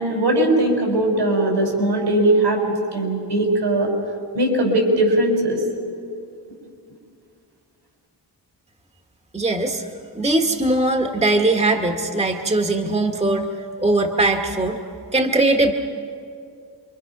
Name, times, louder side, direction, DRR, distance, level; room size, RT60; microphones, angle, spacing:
voice 1, 0.0-2.6 2.9-3.9 4.3-5.6, right 1 dB, 90° right, 0 dB, 5.5 m, -19 dB
voice 2, 9.3-9.8 10.1-13.5 13.8-14.8 15.1-15.7, right 2 dB, 15° right, 4 dB, 1.4 m, -20 dB
27.5 x 23.5 x 6.0 m, 2.4 s
wide cardioid pair, 100°, 41 cm